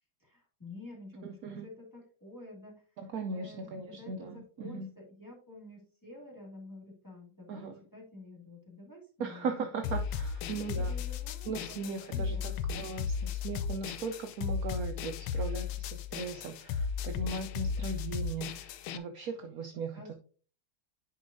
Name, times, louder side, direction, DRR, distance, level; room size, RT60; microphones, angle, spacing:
voice 1, 0.2-7.7 7.9-10.0 10.5-12.8 19.9-20.1, left 2 dB, 10° left, -3 dB, 2.0 m, -50 dB
voice 2, 1.2-1.6 3.1-4.9 7.5-7.8 9.2-10.9 11.5-20.1, right 4 dB, 75° right, 5 dB, 0.8 m, -38 dB
sound 1, 9.8-19.0, left 6 dB, 80° left, 1.3 m, -35 dB
9.5 x 5.4 x 2.6 m, 0.40 s
omnidirectional pair, 2.3 m